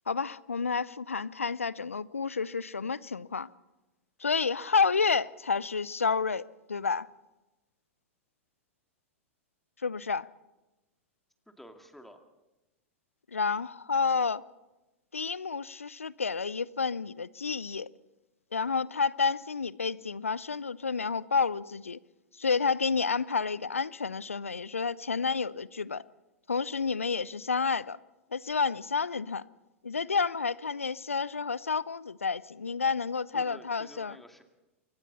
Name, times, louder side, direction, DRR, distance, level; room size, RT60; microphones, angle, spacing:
voice 1, 0.1-3.5 4.2-6.4 6.7-7.1 9.8-10.3 13.3-14.4 15.1-17.9 18.5-22.0 22.4-26.0 26.5-28.0 28.3-29.4 29.8-34.2, left 5 dB, 85° left, 0.6 m, -30 dB
voice 2, 11.6-12.2 33.3-34.4, equal, 5° left, 2.3 m, -50 dB
28.5 x 23.5 x 4.2 m
figure-of-eight pair, 95°, 7 cm